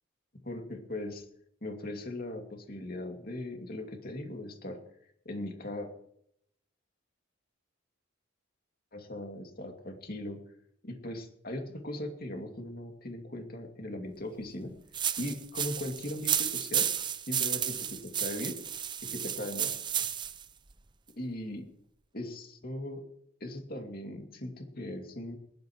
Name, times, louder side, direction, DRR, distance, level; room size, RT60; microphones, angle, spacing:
voice 1, 0.4-1.3 1.6-4.8 5.2-5.9 8.9-10.4 10.8-14.7 15.2-16.9 17.2-18.6 19.0-19.7 21.2-21.6 22.1-23.0 23.4-25.4, left 1 dB, 45° left, 3 dB, 2.4 m, -39 dB
sound 1, 14.9-20.4, right 9 dB, 20° right, 0.6 m, -32 dB
22.0 x 12.0 x 3.1 m, 0.71 s
head